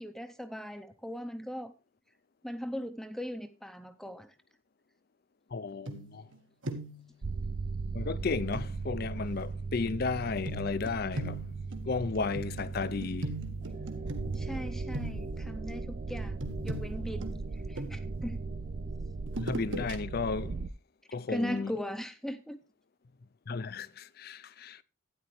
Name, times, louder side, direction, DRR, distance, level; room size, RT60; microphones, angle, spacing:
voice 1, 0.0-1.7 2.4-4.3 14.3-17.4 17.7-18.4 21.3-22.6, equal, ahead, 0.6 m, -39 dB
voice 2, 5.5-6.3 7.9-11.5 11.9-13.3 19.4-20.6 21.1-21.8 23.5-24.8, left 4 dB, 50° left, 0.5 m, -34 dB
sound 1, 5.9-6.4 6.6-7.1 8.5-8.7 10.5-14.6 14.9-15.5 16.4-18.2 19.3-20.0 20.3-20.5, right 1 dB, 75° right, 1.6 m, -39 dB
sound 2, 7.2-20.7, right 3 dB, 40° right, 0.4 m, -37 dB
12.5 x 9.5 x 3.2 m
head